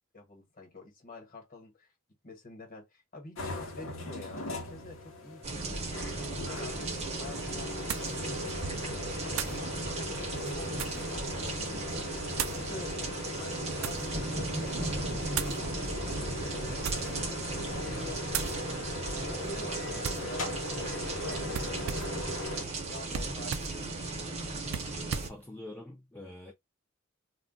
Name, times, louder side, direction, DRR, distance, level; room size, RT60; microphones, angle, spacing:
voice 1, 0.1-1.9 2.2-6.9 7.2-8.5 8.9-18.2 18.9-19.8 20.1-24.1, left 2 dB, 45° left, 1.2 m, -48 dB
sound 1, 3.4-22.6, left 2 dB, 70° left, 0.8 m, -39 dB
sound 2, 5.4-25.3, right 2 dB, 30° right, 0.7 m, -36 dB
sound 3, 6.7-6.8 7.9-8.2 9.3-9.6 10.4-11.1 12.3-12.7 13.4-14.1 15.3-15.6 16.7-17.2 17.6-17.9 18.3-18.6 20.0-20.3 21.5-22.2 23.1-23.8 24.7-25.4, right 7 dB, 70° right, 0.4 m, -36 dB
voice 2, 25.3-26.5, left 1 dB, 10° left, 0.4 m, -45 dB
2.3 x 2.1 x 3.7 m
head